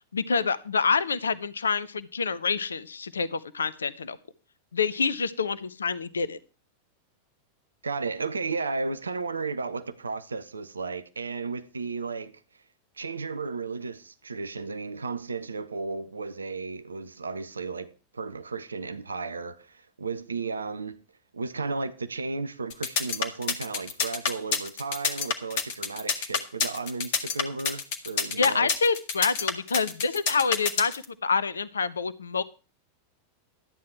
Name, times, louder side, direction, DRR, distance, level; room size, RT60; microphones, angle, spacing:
voice 1, 0.1-4.2 4.7-6.4 28.3-32.4, left 5 dB, 70° left, 0.6 m, -27 dB
voice 2, 7.8-12.3 13.0-21.0 21.3-28.7, right 4 dB, 75° right, 0.8 m, -34 dB
sound 1, 22.7-31.0, left 6 dB, 50° left, 1.9 m, -27 dB
13.0 x 9.4 x 4.6 m
figure-of-eight pair, 90°, 0 cm